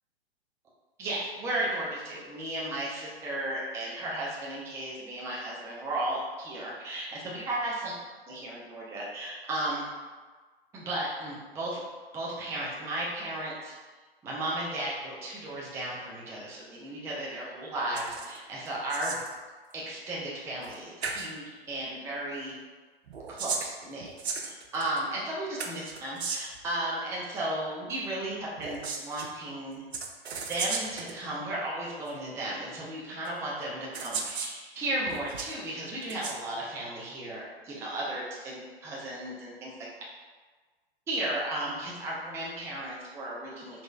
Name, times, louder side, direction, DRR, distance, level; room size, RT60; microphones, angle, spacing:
voice 1, 1.0-7.9 8.3-9.9 10.7-11.8 12.1-13.7 14.2-19.2 19.7-22.5 23.3-24.1 24.4-29.8 30.5-39.7 41.1-43.8, right 1 dB, 10° right, -5 dB, 0.4 m, -34 dB
sound 1, 17.9-18.4 18.7-19.4 20.6-20.7 21.0-21.3 23.1-25.0 25.6-26.6 28.6-29.3 29.9-31.1 32.1-32.2 33.2-33.3 33.9-34.6 35.1-35.5 36.0-36.4, right 4 dB, 90° right, 0.6 m, -35 dB
4.0 x 3.0 x 2.2 m, 1.4 s
hypercardioid pair, 120°, 31 cm